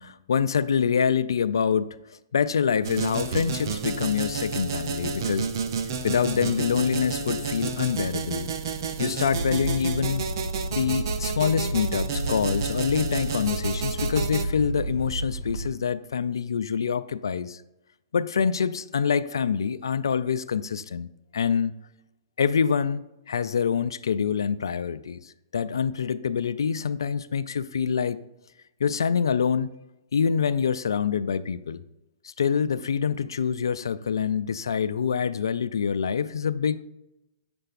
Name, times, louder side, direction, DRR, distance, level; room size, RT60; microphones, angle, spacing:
voice 1, 0.0-2.0 2.3-5.5 6.0-8.5 9.0-10.2 10.7-17.6 18.1-21.1 21.3-21.8 22.4-28.2 28.8-29.7 30.1-31.8 32.2-36.8, left 6 dB, 80° left, 0.4 m, -26 dB
sound 1, 2.8-14.4, right 5 dB, 60° right, 0.6 m, -31 dB
sound 2, 9.3-15.7, right 1 dB, 90° right, 1.9 m, -32 dB
7.6 x 6.8 x 2.5 m
hypercardioid pair, 120°, 2 cm